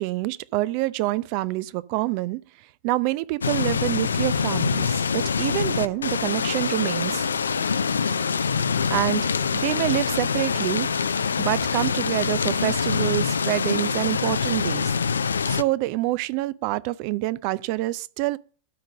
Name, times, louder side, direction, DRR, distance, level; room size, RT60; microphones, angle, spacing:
voice 1, 0.0-2.4 2.8-7.3 8.9-10.9 11.4-15.0 15.5-18.4, right 18 dB, 50° right, 0.5 m, -26 dB
sound 1, 3.4-15.6, left 6 dB, 80° left, 0.4 m, -25 dB
sound 2, 5.4-10.7, left 3 dB, 65° left, 1.5 m, -43 dB
12.5 x 5.2 x 6.4 m
figure-of-eight pair, 95°, 0 cm